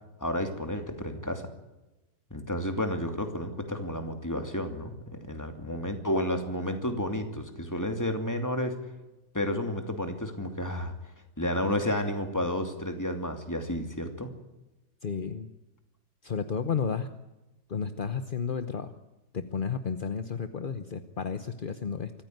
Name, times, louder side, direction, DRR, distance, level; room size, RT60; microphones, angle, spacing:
voice 1, 0.2-1.5 2.3-8.7 9.3-10.9 11.4-14.3, left 1 dB, 10° left, 5 dB, 2.6 m, -31 dB
voice 2, 15.0-15.5 16.2-17.1 17.7-18.9 19.3-22.1, left 6 dB, 40° left, 10 dB, 0.8 m, -32 dB
24.5 x 15.0 x 9.4 m, 1.0 s
omnidirectional pair, 2.0 m